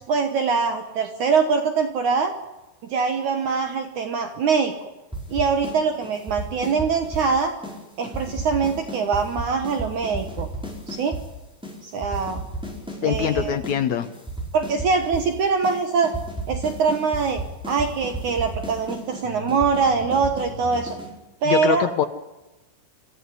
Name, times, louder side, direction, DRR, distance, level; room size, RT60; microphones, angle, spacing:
voice 1, 0.1-2.3 2.8-4.7 5.3-7.5 8.0-10.5 10.9-11.2 11.8-12.4 13.0-13.6 14.5-16.1 16.5-20.9 21.4-21.9, right 5 dB, 60° right, 6 dB, 2.3 m, -23 dB
sound 1, 5.1-5.8 6.0-7.3 7.6-7.8 8.0-11.2 11.6-11.7 12.0-13.8 14.0-15.3 15.6-15.8 16.0-21.1, right 2 dB, ahead, 4.5 m, -33 dB
voice 2, 13.0-14.1 21.4-22.1, left 9 dB, 75° left, 8 dB, 1.7 m, -23 dB
25.5 x 14.5 x 9.8 m, 1.0 s
omnidirectional pair, 4.6 m